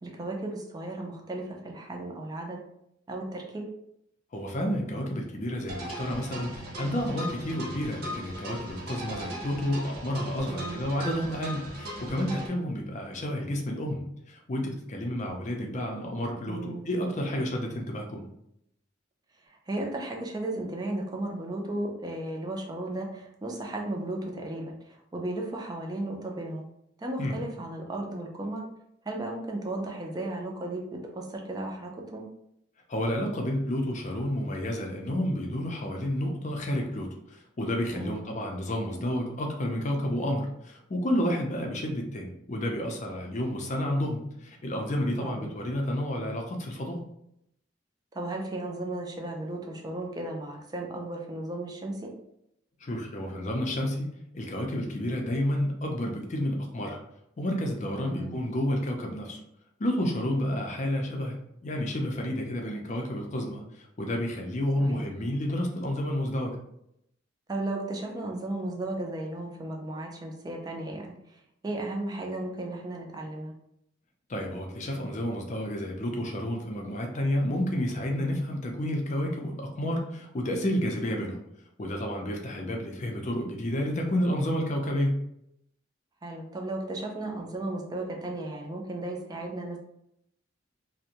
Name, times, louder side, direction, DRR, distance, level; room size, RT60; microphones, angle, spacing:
voice 1, 0.0-2.6 3.1-3.6 10.5-10.8 16.5-16.9 19.5-26.6 27.0-28.6 29.1-30.8 31.1-32.2 37.9-38.2 45.2-45.5 48.1-52.1 58.0-58.3 64.9-65.0 67.5-71.4 71.6-73.5 86.2-89.8, right 2 dB, 20° right, 1 dB, 0.4 m, -35 dB
voice 2, 4.3-18.2 27.2-27.4 32.9-47.0 52.8-57.0 57.4-59.4 59.8-61.4 61.6-66.6 74.3-81.4 81.8-85.2, left 1 dB, 40° left, 2 dB, 0.5 m, -30 dB
sound 1, 5.7-12.5, equal, 55° right, 0.7 m, -39 dB
2.5 x 2.1 x 2.8 m, 0.77 s
head